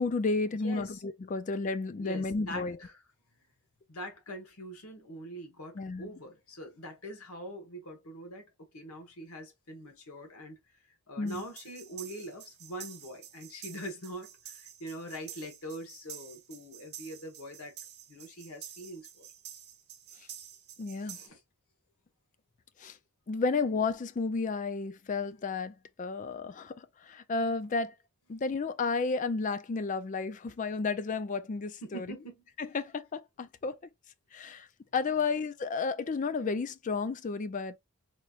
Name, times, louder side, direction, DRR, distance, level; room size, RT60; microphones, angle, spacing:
voice 1, 0.0-2.8 5.8-6.1 11.2-11.4 20.8-21.2 22.8-23.0 23.3-27.9 28.3-32.1 32.6-33.8 34.3-34.7 34.9-37.8, left 4 dB, 35° left, 0.4 m, -32 dB
voice 2, 0.6-1.0 2.0-3.0 3.9-10.6 11.1-17.8 18.1-19.3 21.0-21.4 31.8-32.4, equal, 80° left, 1.3 m, -43 dB
sound 1, 11.3-21.3, right 10 dB, 50° right, 0.7 m, -49 dB
4.3 x 2.8 x 2.4 m
head